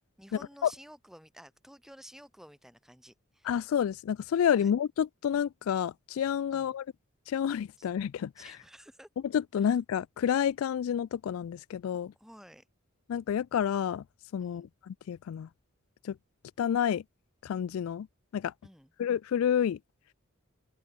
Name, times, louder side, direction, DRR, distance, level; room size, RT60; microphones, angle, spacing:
voice 1, 0.2-3.5 4.6-4.7 6.5-6.7 7.8-7.9 8.4-9.1 9.6-9.7 12.2-12.6 14.4-14.7 18.6-18.9, equal, ahead, 3.8 m, -53 dB
voice 2, 3.4-6.8 7.3-8.5 9.2-12.1 13.1-14.0 14.3-15.5 16.0-16.2 16.6-17.0 17.4-18.1 18.3-18.5 19.0-19.8, left 8 dB, 75° left, 0.3 m, -29 dB
open air
head